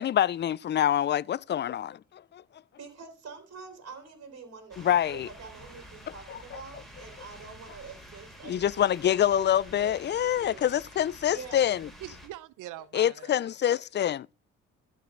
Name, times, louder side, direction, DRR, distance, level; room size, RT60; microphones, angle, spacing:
voice 1, 0.0-2.4 4.8-5.3 6.3-6.4 8.4-11.9 12.9-14.3, left 10 dB, 35° left, 0.4 m, -26 dB
voice 2, 2.7-9.5 9.8-10.9 11.3-11.7, right 5 dB, 55° right, 3.8 m, -46 dB
sound 1, 4.7-12.3, equal, ahead, 3.9 m, -49 dB
voice 3, 12.0-13.5, right 15 dB, 85° right, 0.7 m, -43 dB
13.5 x 5.5 x 3.7 m
cardioid pair, 90°, 30 cm